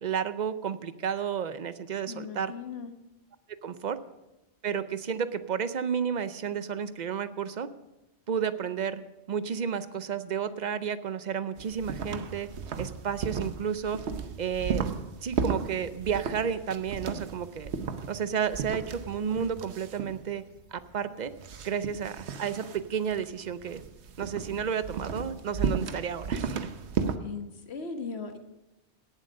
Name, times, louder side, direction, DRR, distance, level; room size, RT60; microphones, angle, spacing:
voice 1, 0.0-2.5 3.6-4.0 4.6-7.7 8.3-9.0 9.3-12.5 12.8-14.0 14.4-14.9 15.2-17.7 18.1-20.4 20.7-21.3 21.6-23.8 24.2-26.7, right 7 dB, 50° right, 13 dB, 0.6 m, -31 dB
voice 2, 2.1-2.9 27.2-28.4, left 5 dB, 70° left, 6 dB, 1.5 m, -38 dB
sound 1, 11.6-27.2, right 6 dB, 75° right, 1.1 m, -35 dB
17.5 x 7.6 x 5.3 m, 0.98 s
omnidirectional pair, 1.1 m